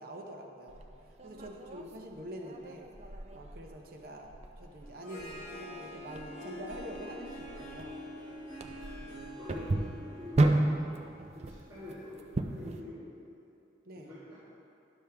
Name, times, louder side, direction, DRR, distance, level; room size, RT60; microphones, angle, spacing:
voice 1, 0.0-2.9 3.3-8.0 9.0-9.4 13.9-14.1, equal, 50° right, 1 dB, 0.9 m, -45 dB
sound 1, 0.7-12.8, right 2 dB, 35° right, 0.4 m, -35 dB
Harp, 4.8-11.9, left 1 dB, 15° left, 2.1 m, -46 dB
voice 2, 9.4-10.6 11.3-13.5 14.0-14.3, left 1 dB, 15° right, -16 dB, 2.0 m, -46 dB
11.0 x 6.3 x 3.5 m, 2.6 s
head